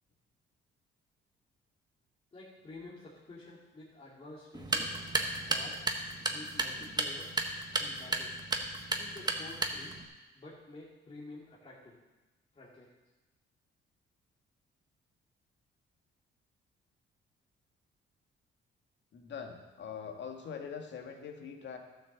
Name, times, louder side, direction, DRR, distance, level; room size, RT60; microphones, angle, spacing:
voice 1, 2.3-4.9 5.3-5.8 6.1-7.3 7.8-8.4 8.9-10.0 10.3-12.0 12.5-12.9, left 2 dB, 30° left, -7 dB, 2.5 m, -50 dB
sound 1, 4.5-10.0, right 2 dB, 20° right, 1.4 m, -34 dB
voice 2, 19.1-21.8, left 6 dB, 65° left, 3 dB, 1.7 m, -43 dB
12.0 x 6.5 x 7.2 m, 1.1 s
cardioid pair, 90°, 20 cm